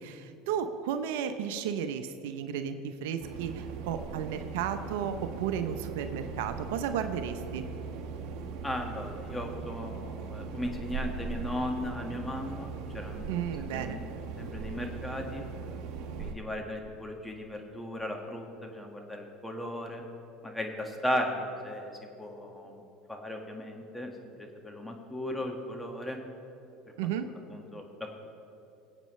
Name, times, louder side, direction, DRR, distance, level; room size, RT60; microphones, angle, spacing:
voice 1, 0.0-7.6 13.3-14.0 27.0-27.3, right 8 dB, 80° right, 8 dB, 0.7 m, -33 dB
sound 1, 3.2-16.3, right 5 dB, 60° right, 1.3 m, -39 dB
voice 2, 8.6-13.4 13.7-14.0 14.4-15.4 16.2-20.0 20.4-21.9 22.2-22.8 23.1-26.2 27.0-27.1 27.5-28.1, left 1 dB, 5° left, 2 dB, 1.8 m, -36 dB
23.5 x 8.3 x 3.2 m, 2.8 s
supercardioid pair, 95°, 0 cm